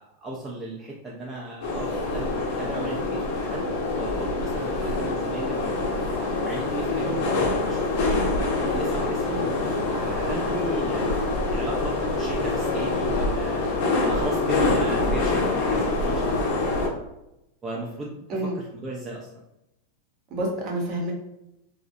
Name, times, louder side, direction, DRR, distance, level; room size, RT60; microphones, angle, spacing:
voice 1, 0.0-3.6 4.0-6.0 6.4-8.2 8.7-13.6 14.0-17.0 17.6-19.3, right 1 dB, 20° right, -3 dB, 0.4 m, -36 dB
sound 1, 1.6-16.9, left 2 dB, 60° left, 0.7 m, -25 dB
voice 2, 20.3-21.1, right 1 dB, 45° right, 0 dB, 0.8 m, -28 dB
2.5 x 2.1 x 2.5 m, 0.88 s
hypercardioid pair, 120°, 0 cm